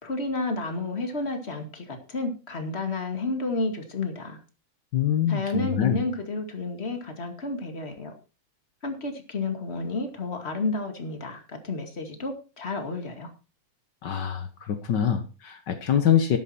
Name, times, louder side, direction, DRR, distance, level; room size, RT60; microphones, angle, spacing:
voice 1, 0.0-4.4 5.3-8.1 8.8-13.3, left 3 dB, 25° left, 5 dB, 2.1 m, -31 dB
voice 2, 4.9-6.0 14.0-16.4, left 9 dB, 70° left, 8 dB, 1.0 m, -24 dB
12.0 x 11.5 x 4.4 m, 0.33 s
omnidirectional pair, 3.5 m